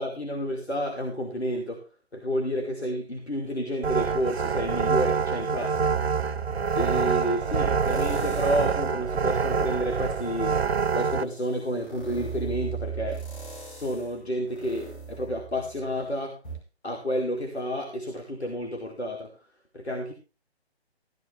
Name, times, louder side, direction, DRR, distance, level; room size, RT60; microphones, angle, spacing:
voice 1, 0.0-1.8 2.1-6.0 6.8-13.2 13.7-16.4 16.8-19.5 19.7-20.1, equal, 75° left, 3 dB, 2.4 m, -30 dB
sound 1, 3.8-11.2, right 5 dB, 75° right, 0.6 m, -26 dB
sound 2, 5.7-7.2 7.8-8.8 9.3-16.0 16.4-16.5, right 6 dB, 50° left, 7.7 m, -38 dB
sound 3, 7.5-10.0, right 3 dB, 55° right, 1.1 m, -37 dB
14.5 x 11.5 x 3.0 m, 0.33 s
figure-of-eight pair, 145°, 32 cm